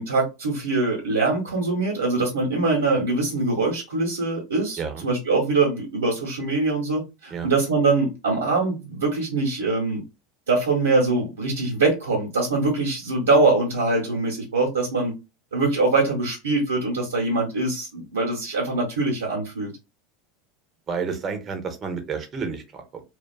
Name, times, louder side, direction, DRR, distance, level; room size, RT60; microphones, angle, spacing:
voice 1, 0.0-10.0 10.5-15.1 15.5-19.7, right 3 dB, 85° right, 0.8 m, -23 dB
voice 2, 4.8-5.1 7.3-7.5 20.9-23.0, right 5 dB, 35° right, 0.7 m, -30 dB
2.4 x 2.3 x 2.3 m
hypercardioid pair, 85°, 0 cm